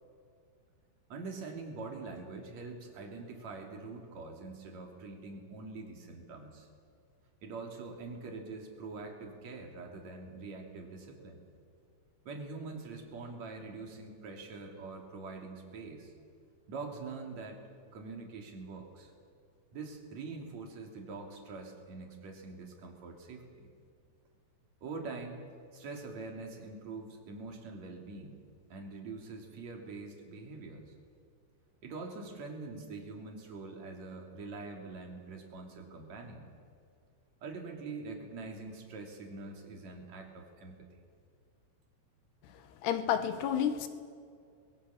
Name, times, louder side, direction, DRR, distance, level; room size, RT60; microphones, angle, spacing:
voice 1, 1.1-6.7 7.4-11.4 12.3-16.1 16.7-19.1 19.7-23.7 24.8-25.4 25.7-28.4 28.7-30.9 31.8-36.5 37.4-40.8, right 3 dB, 40° right, 2 dB, 3.7 m, -44 dB
voice 2, 42.8-43.9, left 9 dB, 70° left, 10 dB, 3.0 m, -30 dB
27.5 x 21.5 x 7.1 m, 2.3 s
omnidirectional pair, 5.4 m